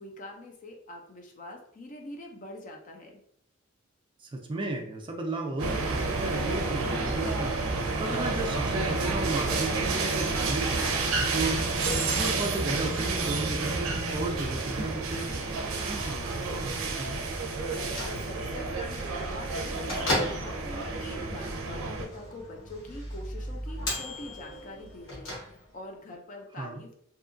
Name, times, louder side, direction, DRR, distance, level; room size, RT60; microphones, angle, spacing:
voice 1, 0.0-3.2 17.7-27.0, left 1 dB, 40° left, 2 dB, 0.5 m, -44 dB
voice 2, 4.2-7.5 8.0-11.6 12.2-15.3 15.7-17.2 26.6-26.8, right 2 dB, 25° right, 2 dB, 0.4 m, -34 dB
sound 1, 5.6-22.1, right 3 dB, 85° right, 0.5 m, -30 dB
Bell / Microwave oven, 17.7-25.9, left 1 dB, 70° left, 1.1 m, -37 dB
2.7 x 2.3 x 2.5 m, 0.65 s
head